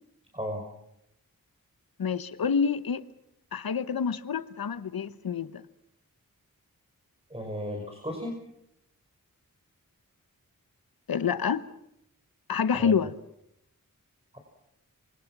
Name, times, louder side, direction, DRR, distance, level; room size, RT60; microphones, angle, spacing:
voice 1, 2.0-3.0 3.5-5.6 11.1-11.6 12.5-13.1, left 6 dB, 85° left, 1.0 m, -27 dB
voice 2, 7.3-8.4 12.8-12.9 14.3-14.4, equal, 15° right, 5.5 m, -34 dB
27.5 x 24.0 x 6.0 m
cardioid pair, 50°, 35 cm